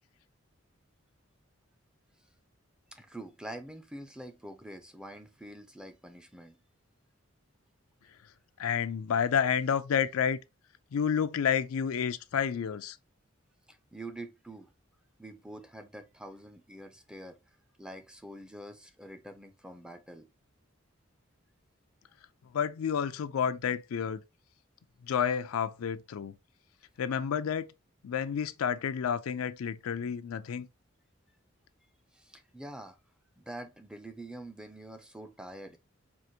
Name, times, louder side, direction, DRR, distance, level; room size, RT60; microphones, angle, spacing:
voice 1, 2.9-6.6 13.7-14.7 15.2-17.4 17.8-20.3 32.1-33.0 33.4-35.8, right 1 dB, 5° right, 0.4 m, -45 dB
voice 2, 8.6-10.4 10.9-13.0 22.5-24.2 25.0-26.4 27.0-27.7 28.0-30.7, left 7 dB, 90° left, 0.4 m, -30 dB
4.6 x 2.5 x 2.7 m
head